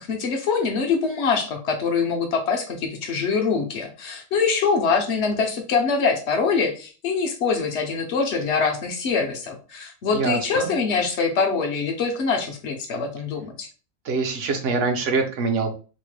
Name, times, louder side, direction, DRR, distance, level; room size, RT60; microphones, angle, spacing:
voice 1, 0.0-13.7, left 5 dB, 60° left, 4 dB, 0.8 m, -24 dB
voice 2, 10.1-10.7 14.0-15.7, right 4 dB, 65° right, 4 dB, 1.0 m, -24 dB
2.9 x 2.1 x 3.1 m, 0.35 s
omnidirectional pair, 1.4 m